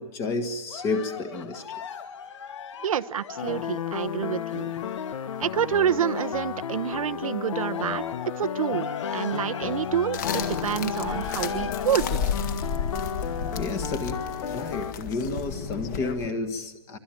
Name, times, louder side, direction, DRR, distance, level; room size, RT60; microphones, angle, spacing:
voice 1, 0.0-1.8 13.1-13.3 13.6-17.0, left 3 dB, 15° left, 9 dB, 1.5 m, -31 dB
Cheering, 0.7-7.0 7.4-14.0 14.6-14.7, left 7 dB, 60° left, 2.6 m, -39 dB
voice 2, 2.8-4.7 5.4-8.0 8.4-12.2, right 9 dB, 90° right, 11 dB, 1.1 m, -28 dB
sound 1, 3.4-14.9, left 8 dB, 75° left, 1.2 m, -33 dB
sound 2, 10.1-16.3, left 6 dB, 30° left, 1.9 m, -32 dB
26.5 x 25.0 x 9.0 m, 1.1 s
hypercardioid pair, 175°, 17 cm